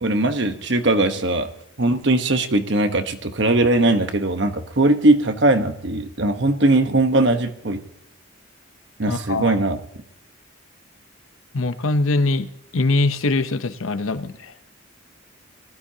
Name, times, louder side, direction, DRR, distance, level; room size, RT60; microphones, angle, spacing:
voice 1, 0.0-1.5 1.8-7.8 9.0-9.8, right 2 dB, 55° right, 7 dB, 1.1 m, -20 dB
voice 2, 9.1-9.6 11.5-12.5 12.7-14.5, left 2 dB, 75° left, 11 dB, 0.8 m, -22 dB
19.5 x 13.0 x 2.8 m, 0.78 s
head